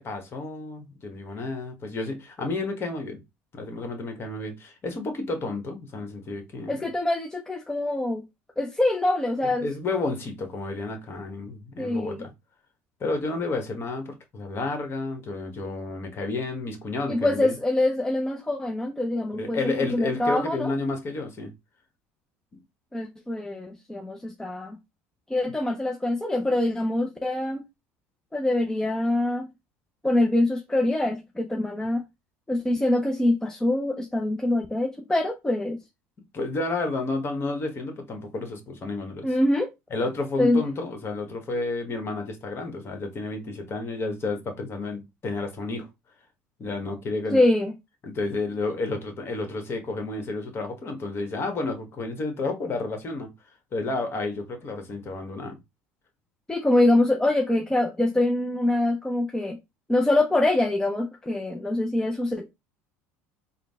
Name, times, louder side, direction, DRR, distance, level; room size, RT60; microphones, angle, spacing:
voice 1, 0.0-3.2 3.5-6.8 9.4-12.3 13.0-17.6 19.3-21.5 36.3-39.3 39.9-45.9 46.6-47.4 48.0-53.3 53.7-55.6, left 3 dB, 40° left, 1.3 m, -31 dB
voice 2, 6.7-8.2 8.6-9.7 11.8-12.2 17.1-20.7 22.9-24.8 25.3-27.6 28.3-29.5 30.0-32.0 32.5-35.8 39.2-39.7 40.4-40.6 47.3-47.7 56.5-59.6 59.9-62.5, left 1 dB, 10° left, 0.6 m, -24 dB
3.8 x 2.2 x 3.5 m
hypercardioid pair, 80°, 6 cm